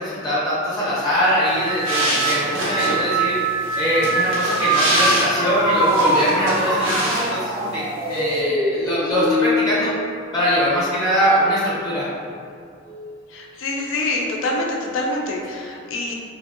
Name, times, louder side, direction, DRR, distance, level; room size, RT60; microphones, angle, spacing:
voice 1, 0.0-3.3 3.8-9.9 10.3-12.1, equal, 20° left, -9 dB, 0.6 m, -22 dB
sound 1, 1.2-10.9 11.3-11.9 12.9-13.2, right 2 dB, 15° right, 0.3 m, -24 dB
sound 2, 1.5-7.7 7.9-8.4, right 1 dB, 85° right, 0.7 m, -26 dB
voice 2, 13.3-16.1, left 2 dB, 85° left, 0 dB, 0.3 m, -25 dB
2.6 x 2.0 x 2.4 m, 2.3 s
head